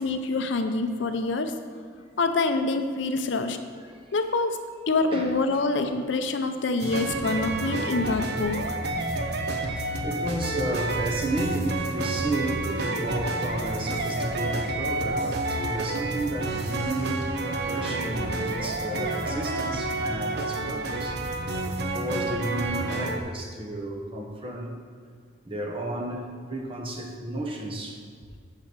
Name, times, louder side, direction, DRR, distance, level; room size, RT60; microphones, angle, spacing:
voice 1, 0.0-1.5 2.2-3.6 4.1-4.6 4.9-8.8, left 3 dB, 65° left, 7 dB, 0.6 m, -26 dB
sound 1, 6.8-23.2, right 2 dB, 55° right, 0.7 m, -29 dB
voice 2, 9.6-17.3 17.6-21.2 21.6-24.7 25.4-28.0, right 1 dB, 30° right, 1 dB, 1.0 m, -32 dB
6.8 x 5.7 x 6.1 m, 2.1 s
head